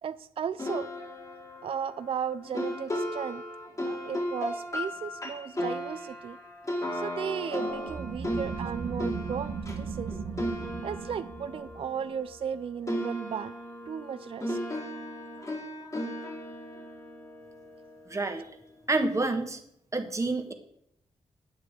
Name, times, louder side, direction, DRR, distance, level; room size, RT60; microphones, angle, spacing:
voice 1, 0.0-0.9 1.6-3.4 3.9-6.4 6.9-10.2 10.8-13.5 13.9-14.6, right 7 dB, 55° right, 14 dB, 0.4 m, -35 dB
sound 1, 0.6-12.6 12.9-18.1, equal, 30° left, 2.1 m, -36 dB
sound 2, 7.7-13.1, right 5 dB, 80° right, 1.1 m, -38 dB
voice 2, 18.1-18.4 18.9-19.6 19.9-20.5, right 2 dB, 25° right, 5 dB, 1.5 m, -28 dB
9.3 x 8.1 x 4.8 m, 0.74 s
cardioid pair, 80°, 11 cm